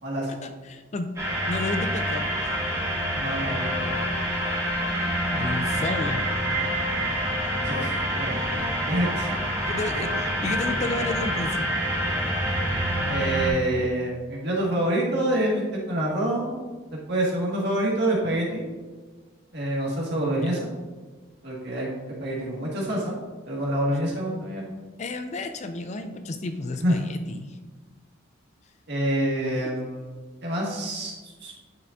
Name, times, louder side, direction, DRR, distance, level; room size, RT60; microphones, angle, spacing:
voice 1, 0.3-1.1 1.5-2.3 5.3-6.2 8.6-8.7 9.6-11.6 20.3-20.6 24.1-24.2 25.0-27.6, left 2 dB, 35° left, 8 dB, 0.4 m, -32 dB
sound 1, 1.2-13.5, equal, 15° right, 2.4 m, -27 dB
voice 2, 3.1-3.7 7.6-9.3 13.0-16.5 16.9-18.6 19.5-20.6 21.4-21.9 22.2-23.1 23.5-24.6 26.8-27.0 28.9-30.1 30.4-31.1 31.4-31.5, right 1 dB, 55° right, -4 dB, 2.0 m, -26 dB
10.5 x 5.7 x 2.7 m, 1.3 s
head